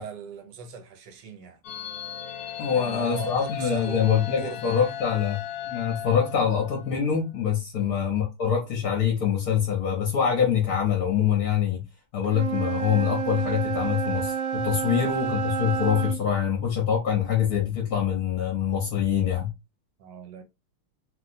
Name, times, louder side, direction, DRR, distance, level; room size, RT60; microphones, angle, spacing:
voice 1, 0.0-1.6 2.7-4.9 7.7-8.0 14.8-15.2 20.0-20.4, right 6 dB, 70° right, 1.2 m, -39 dB
sound 1, 1.6-7.0, left 10 dB, 85° left, 0.8 m, -36 dB
voice 2, 2.6-5.4 5.6-11.8 12.1-19.5, left 8 dB, 60° left, 1.0 m, -25 dB
Wind instrument woodwind instrument, 12.2-16.2, right 7 dB, 85° right, 0.8 m, -29 dB
3.1 x 2.7 x 2.6 m
omnidirectional pair, 2.2 m